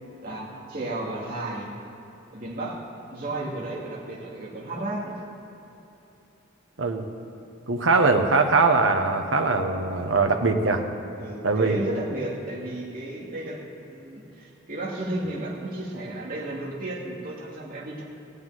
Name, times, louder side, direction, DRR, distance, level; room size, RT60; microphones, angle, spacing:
voice 1, 0.2-1.7 2.3-2.8 3.1-5.2 11.2-18.0, right 1 dB, 45° right, -5 dB, 2.2 m, -33 dB
voice 2, 7.7-10.8 11.4-11.8, right 3 dB, 75° right, 5 dB, 1.1 m, -21 dB
16.5 x 6.9 x 9.2 m, 2.9 s
head